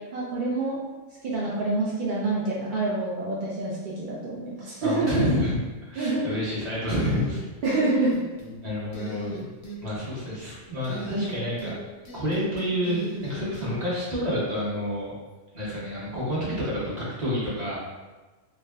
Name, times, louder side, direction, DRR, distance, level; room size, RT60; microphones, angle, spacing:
voice 1, 0.1-0.8 1.2-5.2 6.0-6.2 7.6-8.1, right 2 dB, 60° right, -7 dB, 0.5 m, -27 dB
voice 2, 4.8-5.6 5.9-7.4 8.6-9.4 9.8-11.7 12.1-15.2 15.5-17.8, equal, 35° right, -8 dB, 0.9 m, -28 dB
sound 1, 6.9-7.8 8.1-8.6 8.9-9.8 10.8-11.8 12.0-13.7, right 2 dB, 85° left, 1.1 m, -36 dB
3.5 x 2.0 x 2.2 m, 1.2 s
omnidirectional pair, 1.3 m